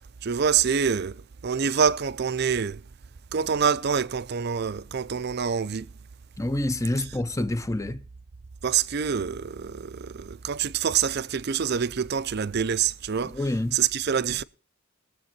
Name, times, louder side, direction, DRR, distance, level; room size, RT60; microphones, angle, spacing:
voice 1, 0.2-2.8 3.3-5.9 8.6-13.4 13.7-14.4, right 7 dB, 50° right, 0.5 m, -26 dB
voice 2, 6.4-8.0 13.2-13.8, left 1 dB, 15° left, 0.7 m, -27 dB
21.5 x 7.6 x 4.3 m
head